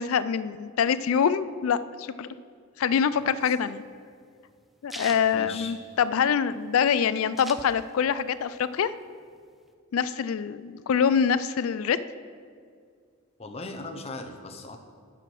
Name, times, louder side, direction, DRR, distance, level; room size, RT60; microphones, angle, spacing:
voice 1, 0.0-2.3 2.8-3.8 4.8-8.9 9.9-12.0, left 7 dB, 80° left, 15 dB, 0.4 m, -25 dB
sound 1, 3.2-6.3 6.6-6.7 6.9-8.2 8.6-9.7, equal, ahead, 0.3 m, -43 dB
voice 2, 5.3-6.0 13.4-14.8, left 2 dB, 30° left, 5 dB, 0.7 m, -38 dB
10.5 x 5.0 x 6.1 m, 2.1 s
head